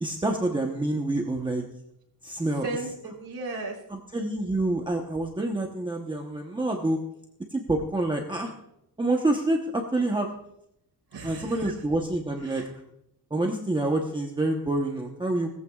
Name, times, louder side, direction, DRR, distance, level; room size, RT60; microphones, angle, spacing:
voice 1, 0.0-1.6 2.2-2.7 3.9-7.0 7.5-8.5 9.0-10.3 11.2-12.6 13.3-15.5, right 2 dB, 10° right, 1 dB, 1.0 m, -27 dB
voice 2, 2.6-3.8 11.1-11.7 12.4-12.7, right 2 dB, 75° right, 1 dB, 3.8 m, -35 dB
19.5 x 14.5 x 2.4 m, 0.79 s
wide cardioid pair, 180°, 38 cm